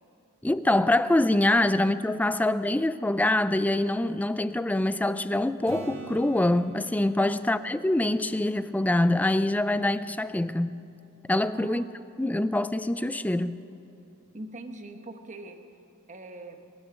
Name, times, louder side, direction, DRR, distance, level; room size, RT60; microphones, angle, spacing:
voice 1, 0.4-10.8 11.3-11.8 12.2-13.5, left 1 dB, 5° left, 14 dB, 0.3 m, -25 dB
Acoustic guitar / Strum, 5.7-9.4 14.3-14.4, right 3 dB, 60° right, 1.5 m, -46 dB
voice 2, 11.4-11.9 14.3-15.6 16.1-16.7, right 2 dB, 35° right, 6 dB, 1.1 m, -42 dB
22.0 x 9.6 x 6.3 m, 2.7 s
head